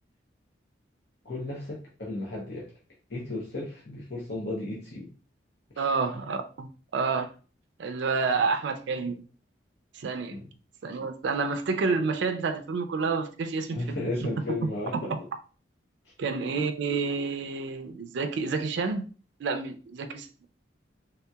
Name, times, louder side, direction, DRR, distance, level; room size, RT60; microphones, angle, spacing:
voice 1, 1.2-2.7 3.1-5.1 5.7-5.9 10.3-10.5 13.7-15.1, left 2 dB, 70° left, -4 dB, 0.8 m, -34 dB
voice 2, 5.8-6.7 6.9-7.3 7.8-9.2 9.9-10.4 10.8-14.3 16.2-19.1 19.4-20.5, right 4 dB, 75° right, 7 dB, 0.4 m, -29 dB
3.4 x 2.8 x 2.3 m, 0.37 s
head